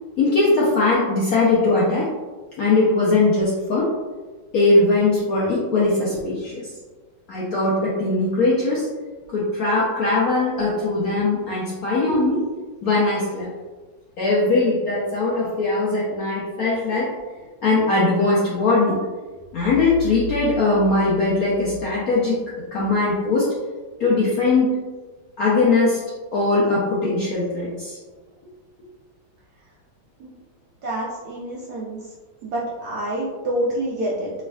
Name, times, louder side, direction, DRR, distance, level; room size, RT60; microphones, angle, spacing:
voice 1, 0.2-2.1 2.6-3.9 4.5-6.7 7.3-8.9 9.3-12.4 12.8-13.5 14.2-17.1 17.6-19.0 19.5-22.4 22.7-23.5 24.0-24.8 25.4-26.0 26.3-28.0, left 3 dB, 70° left, -6 dB, 0.8 m, -20 dB
voice 2, 30.8-32.1 32.4-34.3, right 1 dB, 75° right, -5 dB, 0.9 m, -27 dB
3.3 x 3.2 x 2.3 m, 1.3 s
omnidirectional pair, 2.2 m